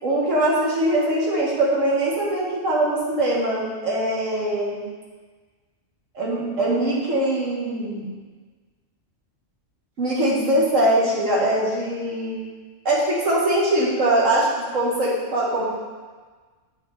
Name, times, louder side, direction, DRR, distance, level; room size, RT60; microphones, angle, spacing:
voice 1, 0.0-4.8 6.1-8.1 10.0-12.4 12.9-14.5 14.7-15.7, right 1 dB, 90° right, -5 dB, 2.0 m, -22 dB
7.5 x 7.5 x 3.5 m, 1.4 s
omnidirectional pair, 1.3 m